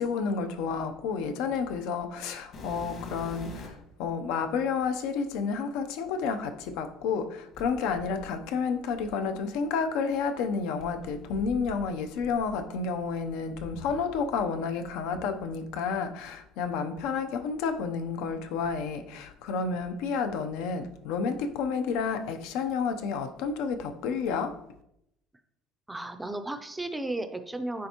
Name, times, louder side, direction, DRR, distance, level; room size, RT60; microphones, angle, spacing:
voice 1, 0.0-24.6, left 5 dB, 80° left, 0.6 m, -30 dB
sound 1, 2.5-3.9 4.8-4.9 7.5-9.6 10.8-14.5 14.8-15.9 16.6-16.8 17.4-17.5 18.1-19.2 19.5-20.0 21.3-21.4, left 2 dB, 50° left, 1.5 m, -46 dB
voice 2, 25.9-27.9, right 2 dB, 10° right, 0.4 m, -34 dB
9.6 x 3.5 x 2.9 m
cardioid pair, 155°, 0 cm